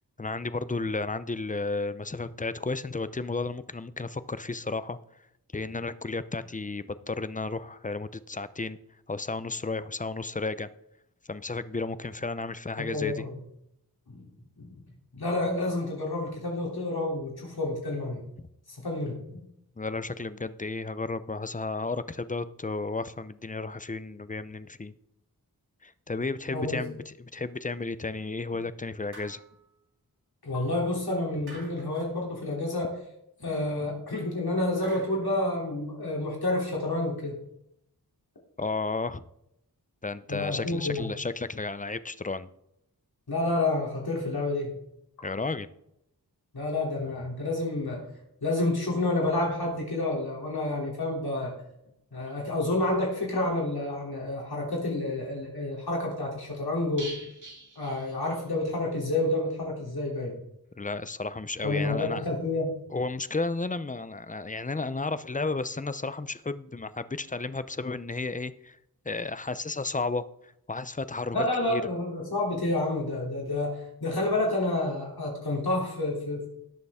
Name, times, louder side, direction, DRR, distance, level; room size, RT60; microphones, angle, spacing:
voice 1, 0.2-5.0 5.5-8.8 9.1-10.7 11.3-13.2 18.4-18.5 19.8-24.9 25.8-29.4 38.6-39.2 40.0-42.5 45.2-45.7 60.8-62.2 62.9-68.8 69.1-71.4 71.7-71.8, left 3 dB, 20° left, 14 dB, 0.6 m, -33 dB
voice 2, 12.8-13.4 14.1-14.2 14.6-14.8 15.1-18.2 18.7-19.4 26.5-26.8 30.4-33.0 33.4-37.4 40.3-41.1 43.3-44.7 46.5-48.0 48.4-51.5 52.1-57.1 57.8-60.3 61.6-62.7 71.3-76.5, left 2 dB, 75° left, -2 dB, 3.2 m, -29 dB
sound 1, 29.1-29.7 31.5-32.1 34.8-35.3, right 2 dB, 75° right, 3.8 m, -48 dB
sound 2, 57.0-58.8 59.0-59.1 59.5-59.6, right 2 dB, 55° right, 3.6 m, -45 dB
18.0 x 6.6 x 3.6 m, 0.78 s
wide cardioid pair, 65°, 38 cm